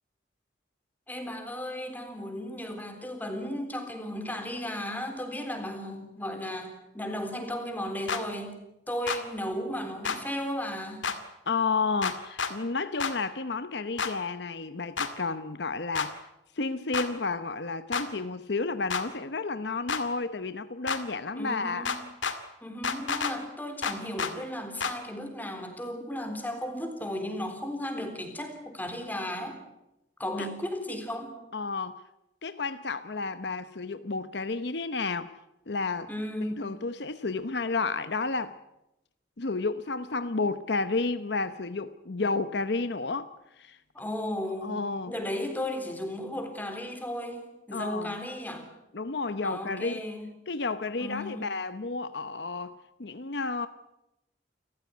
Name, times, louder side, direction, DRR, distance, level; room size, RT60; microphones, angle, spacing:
voice 1, 1.1-8.6 8.9-11.1 21.3-22.0 22.6-29.6 30.2-31.4 36.1-36.6 43.9-44.8 45.1-48.7 49.4-50.3 51.0-51.5, left 1 dB, 10° left, 3.7 m, -35 dB
sound 1, 8.1-8.2 9.1-9.2 10.0-10.2 11.0-11.2 12.0-12.5 13.0-13.1 14.0-14.1 15.0-15.1 15.9-16.1 16.9-17.1 17.9-18.1 18.9-19.0 19.9-20.0 20.9-21.0 21.8-22.4 22.8-23.3 23.8-24.3 24.8-24.9, left 5 dB, 90° left, 2.3 m, -29 dB
voice 2, 11.5-16.2 16.6-21.9 30.4-30.5 31.5-32.0 32.4-35.3 35.7-36.1 36.6-38.6 39.4-43.3 43.6-43.8 44.6-45.1 47.7-48.1 48.9-50.0 50.5-52.7 53.0-53.7, left 3 dB, 65° left, 0.9 m, -31 dB
29.0 x 14.5 x 9.6 m
head